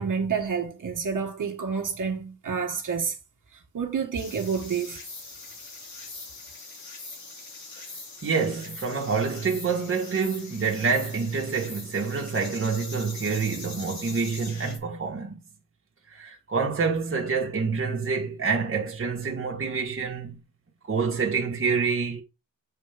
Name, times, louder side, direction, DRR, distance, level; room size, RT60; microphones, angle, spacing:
voice 1, 0.0-3.1 3.7-5.0, right 6 dB, 70° right, 1.8 m, -29 dB
sound 1, 4.1-14.8, left 3 dB, 60° left, 2.7 m, -42 dB
voice 2, 8.2-15.4 16.1-20.4 20.9-22.2, right 5 dB, 40° right, 1.5 m, -27 dB
7.4 x 3.9 x 3.5 m
cardioid pair, 90°, 32 cm